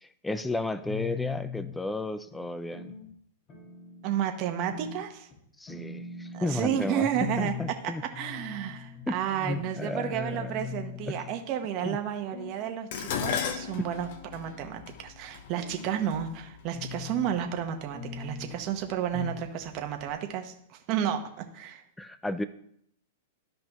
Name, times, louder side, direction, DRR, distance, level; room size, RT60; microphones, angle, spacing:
voice 1, 0.0-2.9 5.6-7.1 7.4-8.0 9.1-11.2 11.8-12.0 13.8-13.9 22.0-22.4, left 2 dB, 5° left, 12 dB, 0.4 m, -33 dB
sound 1, 0.8-1.8 2.3-3.1 3.5-4.1 4.7-5.0 5.3-5.4 5.7-6.6 7.1-7.7 8.1-9.1 9.5-9.7 10.1-10.2 10.5-11.4 11.9-12.6 13.1-13.8 14.3-14.8 15.3-16.3 16.7-17.3 17.9-18.6 19.1-19.5 19.7-19.8 20.1-20.2, left 6 dB, 30° left, 2.1 m, -41 dB
voice 2, 4.0-5.3 6.3-7.5 7.8-21.8, right 9 dB, 40° right, 5 dB, 1.1 m, -32 dB
Dishes pots and pans, 12.9-17.3 18.2-18.6 18.9-19.8 20.0-20.1, left 7 dB, 55° left, 0.8 m, -36 dB
13.0 x 5.0 x 3.0 m, 0.71 s
hypercardioid pair, 135°, 0 cm